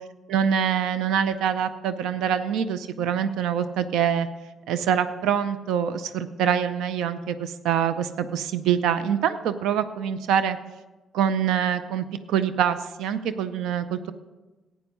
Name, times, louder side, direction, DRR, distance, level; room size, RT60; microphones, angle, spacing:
voice 1, 0.3-4.3 4.7-10.6 11.1-14.1, right 8 dB, 85° right, 12 dB, 0.5 m, -25 dB
11.5 x 9.1 x 5.3 m, 1.1 s
cardioid pair, 90°, 0 cm